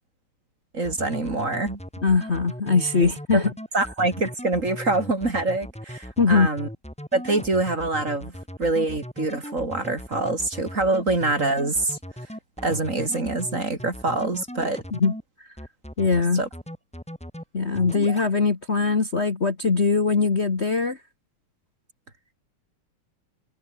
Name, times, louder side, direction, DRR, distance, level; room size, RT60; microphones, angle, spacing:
voice 1, 0.7-1.8 3.3-6.7 7.1-12.0 12.6-14.8 16.3-16.5, right 2 dB, 35° right, 4.1 m, -25 dB
sound 1, 0.8-15.2 15.6-16.2 16.5-17.4 17.7-18.3, equal, 5° left, 5.4 m, -37 dB
voice 2, 2.0-3.5 6.2-6.5 14.9-15.1 16.0-16.4 17.5-21.0, left 4 dB, 30° left, 1.8 m, -21 dB
omnidirectional pair, 2.4 m